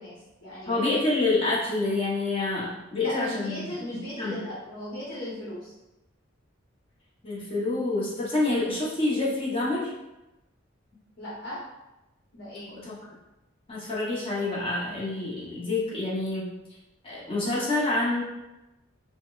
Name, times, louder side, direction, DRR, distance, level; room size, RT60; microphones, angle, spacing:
voice 1, 0.0-0.8 3.0-5.7 11.2-11.6 12.3-12.7, left 1 dB, 60° left, -9 dB, 1.0 m, -37 dB
voice 2, 0.7-3.6 4.2-4.3 7.2-9.9 12.8-12.9 13.7-16.5 17.0-18.2, left 2 dB, 30° left, -7 dB, 0.9 m, -27 dB
4.1 x 2.1 x 2.4 m, 0.97 s
head